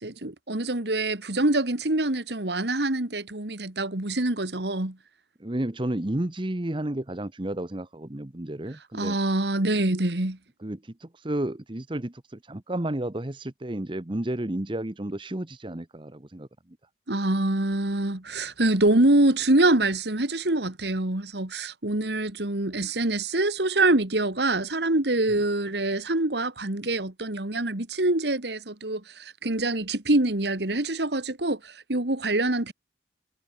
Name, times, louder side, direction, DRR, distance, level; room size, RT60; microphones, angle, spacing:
voice 1, 0.0-5.0 8.9-10.4 17.1-32.7, right 2 dB, 65° right, 2.2 m, -25 dB
voice 2, 5.4-9.2 10.6-16.5, right 1 dB, 30° right, 1.0 m, -32 dB
head